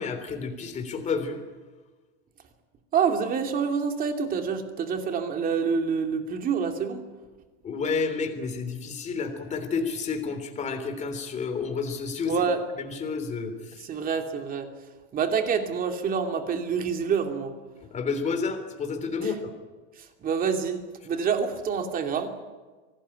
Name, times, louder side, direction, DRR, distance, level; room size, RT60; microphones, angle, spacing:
voice 1, 0.0-1.4 7.6-12.4 12.8-13.8 17.9-19.5, left 5 dB, 20° left, 7 dB, 3.3 m, -30 dB
voice 2, 2.9-7.0 12.3-12.6 13.8-14.7 15.1-17.5 19.2-19.3 20.0-22.3, right 6 dB, 25° right, 5 dB, 2.7 m, -27 dB
25.0 x 18.5 x 10.0 m, 1.3 s
supercardioid pair, 160°, 35 cm